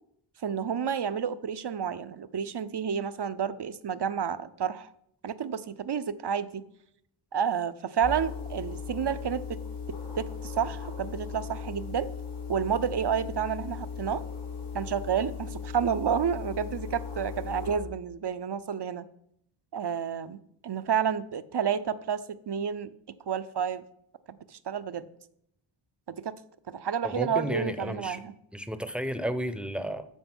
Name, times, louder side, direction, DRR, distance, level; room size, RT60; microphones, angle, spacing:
voice 1, 0.4-4.9 5.2-6.6 7.3-9.6 9.9-12.1 12.5-14.2 14.7-19.1 19.7-22.9 23.3-23.8 24.3-25.1 26.1-26.4 26.7-28.3, right 7 dB, 55° right, 14 dB, 0.6 m, -30 dB
sound 1, 8.0-17.8, left 6 dB, 85° left, 4.1 m, -38 dB
voice 2, 27.0-28.2 28.5-30.1, equal, ahead, 11 dB, 0.7 m, -32 dB
13.5 x 5.1 x 6.1 m, 0.74 s
wide cardioid pair, 95°, 50 cm